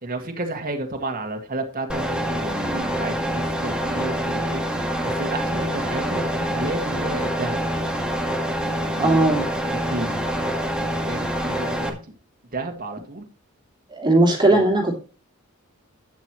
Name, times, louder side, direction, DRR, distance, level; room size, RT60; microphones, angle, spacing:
voice 1, 0.0-4.6 5.0-7.9 8.6-9.2 9.6-12.0 12.5-13.3 14.5-14.6, right 2 dB, 45° right, 2.0 m, -32 dB
sound 1, 1.9-11.9, equal, 5° right, 2.0 m, -26 dB
voice 2, 9.0-9.4 13.9-15.0, right 2 dB, 20° right, 2.8 m, -18 dB
12.5 x 9.3 x 3.1 m
head